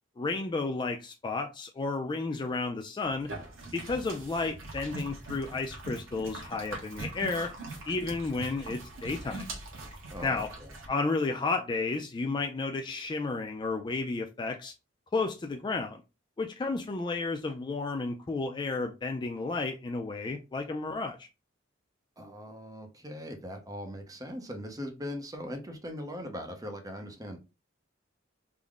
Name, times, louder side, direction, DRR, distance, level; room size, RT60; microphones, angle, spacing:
voice 1, 0.2-3.3 3.7-7.5 7.9-9.4 10.2-10.5 10.9-14.7 15.1-16.0 16.4-21.3, left 3 dB, 25° left, 0.3 m, -32 dB
sound 1, 3.1-10.9, right 2 dB, 80° right, 1.2 m, -42 dB
voice 2, 10.1-10.7 22.2-27.4, equal, 20° right, 0.7 m, -40 dB
3.7 x 2.1 x 3.4 m
head